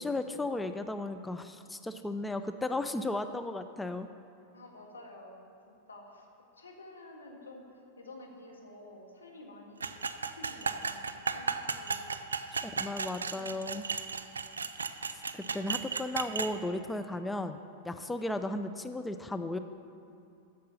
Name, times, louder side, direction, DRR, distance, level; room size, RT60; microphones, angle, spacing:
voice 1, 0.0-4.1 12.6-13.9 15.1-19.6, left 2 dB, 10° left, 9 dB, 0.4 m, -35 dB
voice 2, 4.5-6.3 6.5-10.0 10.3-13.8 15.3-15.6 18.1-18.4, left 2 dB, 85° left, 0 dB, 1.6 m, -51 dB
sound 1, 9.8-16.5, right 5 dB, 85° right, 0.4 m, -35 dB
9.2 x 6.6 x 7.0 m, 2.5 s
hypercardioid pair, 100°, 0 cm